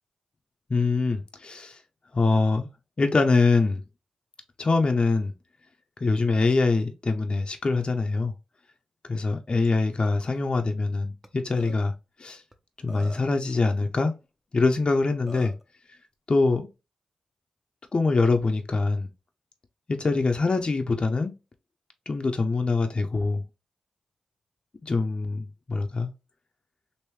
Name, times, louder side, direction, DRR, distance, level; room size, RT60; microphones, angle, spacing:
voice 1, 0.7-1.8 2.1-2.7 3.0-3.8 4.6-5.3 6.0-8.3 9.1-11.9 12.2-12.4 12.8-14.2 14.5-15.5 16.3-16.7 17.9-19.1 19.9-21.3 22.1-23.4 24.8-26.1, left 3 dB, 45° left, 0.5 m, -24 dB
Burping eructation, 11.2-11.3 11.6-11.8 12.5-12.6 12.9-13.4 14.8-14.9 15.3-15.6, right 1 dB, 10° right, 0.6 m, -42 dB
3.1 x 2.6 x 3.2 m
supercardioid pair, 40°, 2 cm